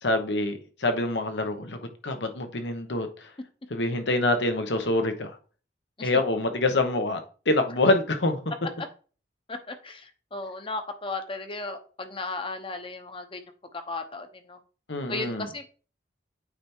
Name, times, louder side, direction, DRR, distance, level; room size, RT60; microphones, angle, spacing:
voice 1, 0.0-3.3 3.7-5.4 6.0-7.2 7.5-8.4 14.9-15.5, left 2 dB, 75° left, 1.1 m, -26 dB
voice 2, 9.5-13.4 13.9-14.6 15.1-15.7, left 3 dB, 30° left, 0.9 m, -35 dB
8.8 x 3.4 x 4.5 m
head